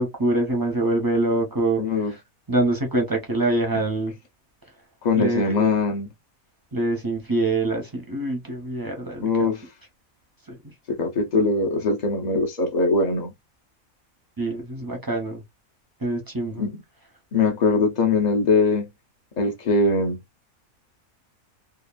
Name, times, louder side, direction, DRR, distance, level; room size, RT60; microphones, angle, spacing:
voice 1, 0.0-2.2 2.5-4.1 5.2-5.7 6.7-9.5 10.5-10.6 14.4-15.4 16.0-16.7, right 2 dB, 25° right, 0.5 m, -25 dB
voice 2, 1.8-2.1 5.0-6.1 9.2-9.6 10.9-13.3 16.6-16.8 17.3-18.9 19.4-20.2, left 3 dB, 65° left, 0.4 m, -21 dB
2.8 x 2.3 x 2.3 m
omnidirectional pair, 1.5 m